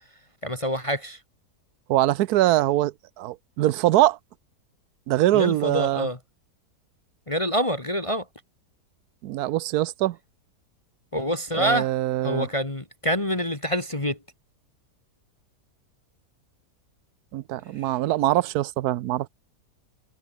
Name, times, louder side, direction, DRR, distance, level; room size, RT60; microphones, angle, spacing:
voice 1, 0.4-1.2 5.3-6.2 7.3-8.3 11.1-11.9 12.2-14.2 17.8-17.9, equal, 20° left, 1.9 m, -26 dB
voice 2, 1.9-4.2 5.1-6.1 9.2-10.2 11.6-12.5 17.3-19.3, right 15 dB, 75° right, 1.1 m, -23 dB
omnidirectional pair, 1.8 m